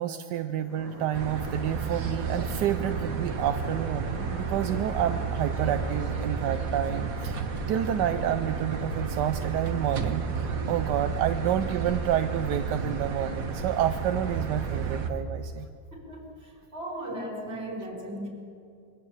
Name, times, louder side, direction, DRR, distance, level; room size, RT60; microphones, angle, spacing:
voice 1, 0.0-7.4 7.7-15.7, right 10 dB, 80° right, 9 dB, 1.3 m, -29 dB
sound 1, 0.7-6.2, equal, 75° left, 5.8 m, -43 dB
sound 2, 1.1-15.1, right 5 dB, 55° right, 1.7 m, -32 dB
sound 3, 2.7-14.7, equal, 15° right, 7.1 m, -46 dB
voice 2, 15.9-18.3, right 1 dB, 35° right, -1 dB, 4.8 m, -37 dB
23.0 x 15.5 x 7.3 m, 2.5 s
omnidirectional pair, 1.8 m